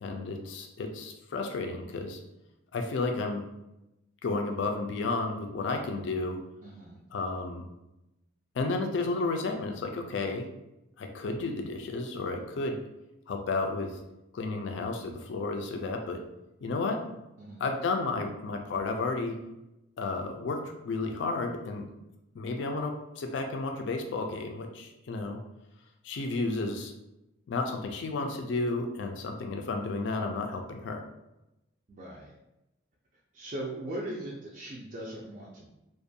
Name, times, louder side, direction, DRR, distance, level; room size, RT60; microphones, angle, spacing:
voice 1, 0.0-2.2 2.7-3.4 4.2-6.4 7.1-7.6 8.5-10.5 11.0-12.8 13.3-13.9 14.3-16.2 16.6-17.0 17.6-19.3 20.0-20.6 20.8-21.9 22.3-25.4 26.0-26.9 27.5-31.0, left 3 dB, 60° left, 3 dB, 0.3 m, -32 dB
voice 2, 6.6-7.0 17.4-17.6 31.9-32.3 33.3-35.7, right 1 dB, 40° right, -5 dB, 0.3 m, -39 dB
2.5 x 2.2 x 2.6 m, 0.91 s
head